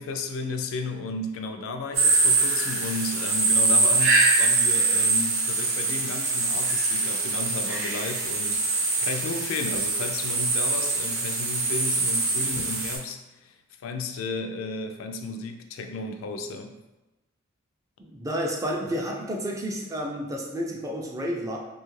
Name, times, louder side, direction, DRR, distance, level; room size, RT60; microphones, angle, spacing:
voice 1, 0.0-13.5 13.8-16.8, left 3 dB, 75° left, 6 dB, 0.3 m, -33 dB
sound 1, 1.9-13.0, right 3 dB, 70° right, 0.8 m, -24 dB
voice 2, 18.0-21.6, equal, 15° right, 0 dB, 0.3 m, -30 dB
2.7 x 2.3 x 3.1 m, 1.0 s
head